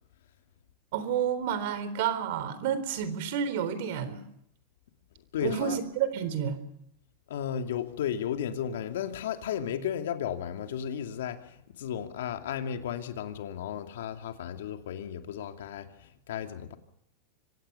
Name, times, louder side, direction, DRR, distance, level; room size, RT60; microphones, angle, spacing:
voice 1, 0.9-4.2 5.4-6.6, right 8 dB, 65° right, 3.9 m, -30 dB
voice 2, 5.3-5.8 7.3-16.8, left 9 dB, 85° left, 2.6 m, -34 dB
25.5 x 17.0 x 6.9 m
supercardioid pair, 130°, 0 cm